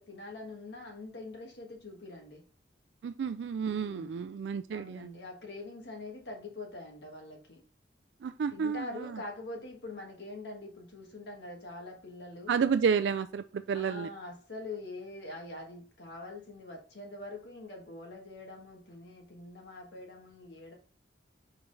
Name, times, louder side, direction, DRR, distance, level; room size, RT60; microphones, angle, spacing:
voice 1, 0.0-2.4 3.7-4.2 4.7-7.6 8.5-12.6 13.7-20.7, left 2 dB, 65° left, 1.4 m, -44 dB
voice 2, 3.0-5.2 8.2-9.2 12.5-14.1, right 6 dB, 70° right, 0.3 m, -31 dB
5.6 x 4.6 x 3.8 m
head